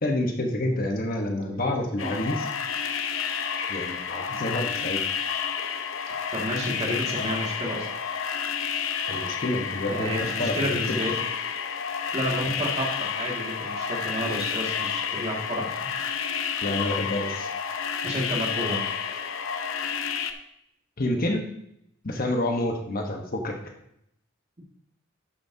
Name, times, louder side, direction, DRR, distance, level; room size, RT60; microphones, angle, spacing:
voice 1, 0.0-2.5 3.7-5.0 9.1-11.0 16.6-17.5 21.0-21.4 22.0-23.5, left 1 dB, 45° left, 3 dB, 1.1 m, -28 dB
sound 1, 2.0-20.3, left 7 dB, 70° left, 0.7 m, -30 dB
voice 2, 6.3-7.9 9.9-11.1 12.1-15.8 18.0-18.9, equal, 30° right, -2 dB, 2.1 m, -30 dB
11.5 x 8.5 x 2.8 m, 0.77 s
head